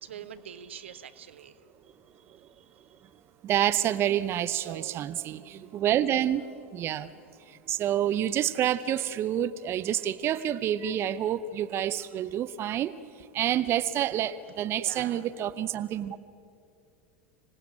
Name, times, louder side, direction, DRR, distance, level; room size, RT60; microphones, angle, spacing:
voice 1, 0.0-1.6 2.3-2.9 4.5-5.0 14.7-15.2, right 8 dB, 80° right, 13 dB, 1.0 m, -45 dB
voice 2, 3.4-6.4 6.7-7.1 7.5-12.9 13.3-16.2, right 11 dB, 40° right, 14 dB, 0.8 m, -28 dB
25.5 x 18.0 x 8.8 m, 2.4 s
hypercardioid pair, 85°, 6 cm